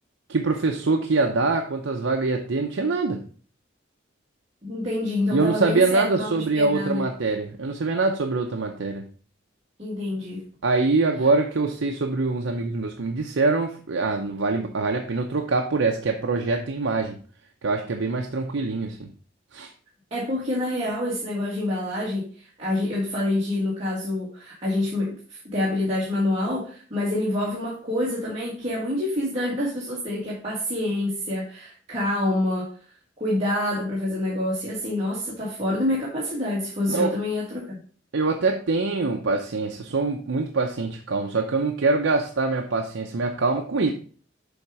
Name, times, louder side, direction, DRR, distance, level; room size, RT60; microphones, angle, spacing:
voice 1, 0.3-3.2 5.3-9.0 10.6-17.2 17.6-19.1 19.5-19.7 36.9-37.1 38.1-43.9, right 3 dB, 80° right, 3 dB, 0.6 m, -24 dB
voice 2, 4.6-7.1 9.8-10.4 20.1-32.7 33.2-37.8, left 1 dB, 35° right, -8 dB, 1.8 m, -27 dB
7.0 x 3.6 x 4.7 m, 0.43 s
head